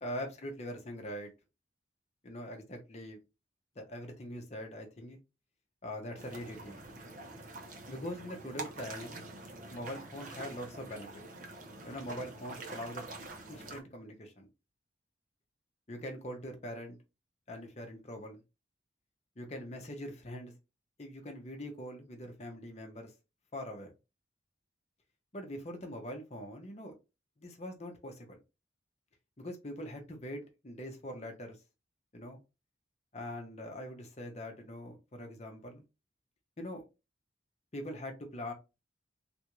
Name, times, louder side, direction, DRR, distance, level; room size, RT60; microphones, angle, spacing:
voice 1, 0.0-1.3 2.2-3.2 3.8-5.2 5.8-6.8 7.9-9.3 9.7-11.1 11.8-13.0 13.5-14.5 15.9-17.0 17.5-18.4 19.4-20.5 21.0-23.1 23.5-23.9 25.3-26.9 27.4-28.4 29.4-31.6 32.1-32.4 33.1-35.8 36.6-36.8 37.7-38.5, equal, 35° left, 0.8 m, -42 dB
sound 1, 6.2-13.8, right 2 dB, 45° right, 0.7 m, -46 dB
3.4 x 2.6 x 3.0 m
head